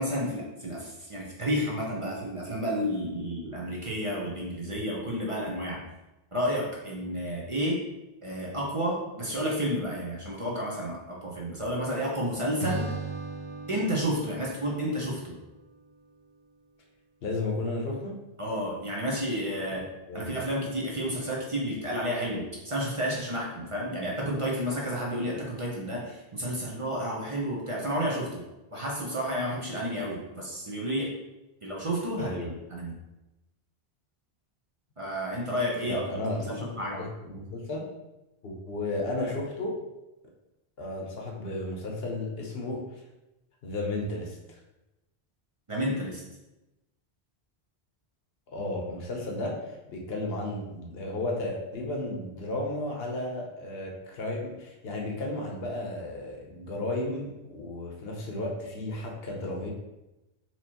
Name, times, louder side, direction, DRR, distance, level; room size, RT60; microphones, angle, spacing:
voice 1, 0.0-5.8 6.3-7.8 8.2-12.9 13.7-15.4 18.4-19.9 20.1-28.4 28.7-31.1 31.6-32.3 32.7-32.9 35.0-37.0 45.7-46.2, equal, 35° right, -3 dB, 0.7 m, -31 dB
Acoustic guitar / Strum, 12.6-15.9, right 4 dB, 80° right, 0.9 m, -37 dB
voice 2, 17.2-18.2 20.1-20.4 32.2-32.5 35.8-37.9 38.4-39.8 40.8-42.8 43.6-44.6 48.5-59.7, left 2 dB, 70° left, -1 dB, 1.0 m, -33 dB
4.3 x 2.9 x 2.9 m, 0.98 s
omnidirectional pair, 1.1 m